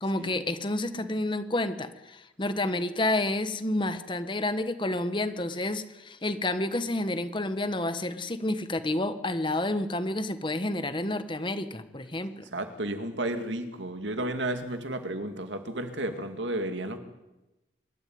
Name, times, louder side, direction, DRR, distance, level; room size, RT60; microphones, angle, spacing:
voice 1, 0.0-12.4, left 1 dB, 25° left, 10 dB, 1.2 m, -30 dB
voice 2, 12.5-17.0, right 1 dB, 80° right, 7 dB, 2.3 m, -32 dB
25.5 x 13.0 x 9.5 m, 1.0 s
head